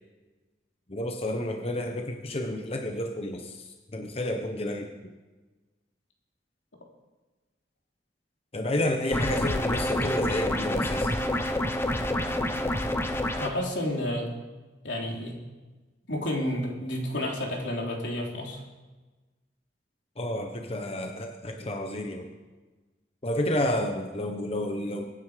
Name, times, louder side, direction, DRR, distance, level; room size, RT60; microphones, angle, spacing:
voice 1, 0.9-5.1 8.5-11.1 20.2-22.3 23.2-25.1, left 1 dB, 35° left, 4 dB, 1.2 m, -30 dB
sound 1, 9.1-13.5, left 1 dB, 15° left, 1.0 m, -27 dB
voice 2, 13.4-14.3 14.8-15.4 16.1-18.6, left 1 dB, 85° left, 0 dB, 3.4 m, -30 dB
24.0 x 9.8 x 5.0 m, 1.2 s
head